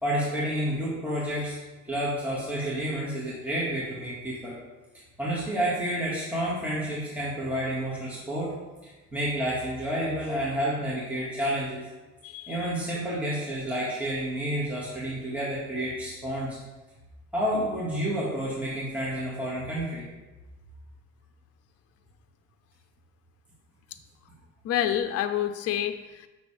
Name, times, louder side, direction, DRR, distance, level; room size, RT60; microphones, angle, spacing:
voice 1, 0.0-1.6 1.8-4.6 5.2-8.5 8.8-11.9 12.5-16.6 17.3-20.0, right 1 dB, 5° right, -8 dB, 1.9 m, -30 dB
voice 2, 12.2-12.7 24.6-26.3, left 10 dB, 55° left, 8 dB, 0.5 m, -28 dB
8.0 x 6.2 x 3.4 m, 1.1 s
cardioid pair, 125°, 31 cm